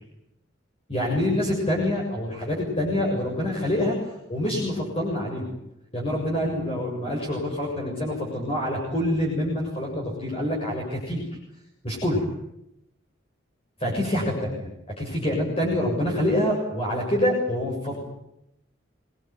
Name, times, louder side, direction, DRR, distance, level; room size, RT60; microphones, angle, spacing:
voice 1, 0.9-4.0 4.3-5.6 5.9-11.2 11.8-12.3 13.8-18.1, left 1 dB, 30° left, -2 dB, 7.1 m, -26 dB
26.5 x 20.5 x 9.6 m, 0.82 s
head